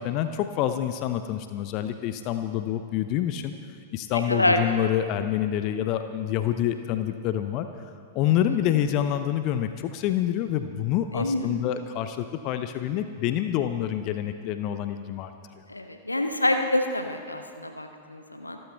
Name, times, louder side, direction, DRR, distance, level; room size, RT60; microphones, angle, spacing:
voice 1, 0.0-3.5 3.9-7.7 8.1-15.3, left 11 dB, 40° left, 9 dB, 0.8 m, -27 dB
voice 2, 4.1-4.6 8.2-8.4 11.1-11.5 15.7-18.6, left 1 dB, 85° left, 6 dB, 1.1 m, -26 dB
26.0 x 13.5 x 3.5 m, 2.2 s
figure-of-eight pair, 95°, 0 cm